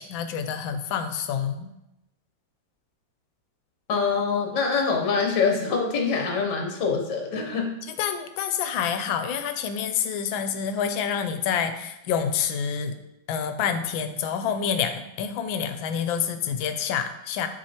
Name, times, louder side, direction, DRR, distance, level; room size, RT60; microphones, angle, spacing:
voice 1, 0.0-1.7 8.0-12.9 13.3-17.5, left 7 dB, 90° left, 8 dB, 1.3 m, -27 dB
voice 2, 3.9-7.7, left 5 dB, 65° left, 2 dB, 1.6 m, -24 dB
9.0 x 4.4 x 2.9 m, 0.90 s
omnidirectional pair, 2.1 m